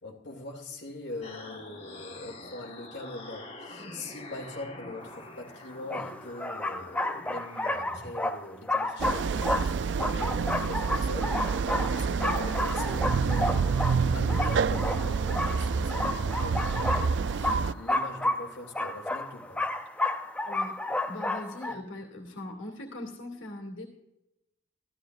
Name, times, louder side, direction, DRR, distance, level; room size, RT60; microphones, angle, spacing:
voice 1, 0.0-19.7, left 2 dB, 60° left, -1 dB, 2.4 m, -42 dB
sound 1, 1.2-8.1, left 2 dB, 30° left, 1.4 m, -46 dB
sound 2, 5.1-5.2 5.9-21.7, left 2 dB, 5° left, 0.4 m, -31 dB
sound 3, 9.0-17.7, right 5 dB, 65° right, 0.4 m, -28 dB
voice 2, 20.5-20.8 21.1-23.9, left 1 dB, 90° left, 2 dB, 2.3 m, -40 dB
15.0 x 14.0 x 2.5 m, 0.89 s
head